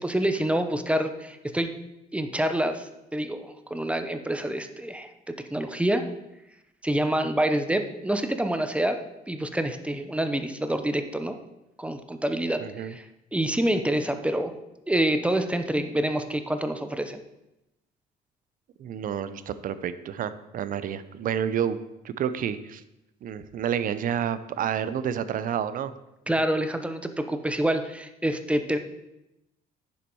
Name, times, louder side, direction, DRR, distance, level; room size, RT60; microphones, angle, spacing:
voice 1, 0.0-1.7 2.1-5.1 5.5-6.0 6.8-9.0 9.3-11.4 11.8-13.0 13.3-14.5 14.9-17.2 26.3-28.8, right 1 dB, 5° right, 8 dB, 0.8 m, -27 dB
voice 2, 12.6-12.9 18.8-21.8 22.0-22.8 23.2-25.9, right 9 dB, 55° right, 13 dB, 0.7 m, -29 dB
9.9 x 7.2 x 4.6 m, 0.91 s
cardioid pair, 110°, 17 cm